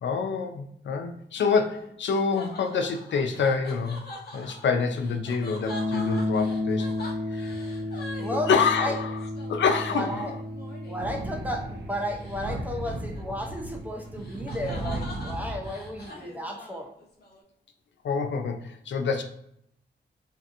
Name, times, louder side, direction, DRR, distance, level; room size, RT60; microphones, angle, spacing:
voice 1, 0.0-4.0 4.3-6.9 7.3-7.6 8.3-9.2 9.5-10.4 18.0-19.2, left 5 dB, 85° left, 5 dB, 0.4 m, -27 dB
sound 1, 1.4-11.2 12.1-12.5 12.8-17.4, left 2 dB, 60° left, 0.8 m, -44 dB
sound 2, 5.6-15.7, left 2 dB, 15° left, 1.1 m, -34 dB
voice 2, 8.2-8.5 8.8-8.9 9.9-10.3 10.9-16.9, equal, 10° right, 1 dB, 0.5 m, -33 dB
Thunder, 11.0-16.1, right 1 dB, 75° right, 0.5 m, -36 dB
2.8 x 2.4 x 2.5 m, 0.73 s
wide cardioid pair, 95°, 19 cm